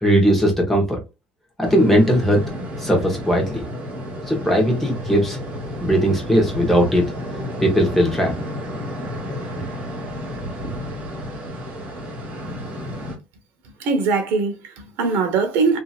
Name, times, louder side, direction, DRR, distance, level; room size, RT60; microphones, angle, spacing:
voice 1, 0.0-1.0 1.6-2.5 2.8-3.6 4.3-5.4 5.8-7.1 7.6-8.3, equal, 5° left, 1.1 m, -18 dB
sound 1, 1.6-13.2, left 1 dB, 40° right, 1.4 m, -31 dB
voice 2, 13.8-15.8, right 4 dB, 85° right, 0.9 m, -21 dB
2.9 x 2.7 x 2.4 m
cardioid pair, 155°, 4 cm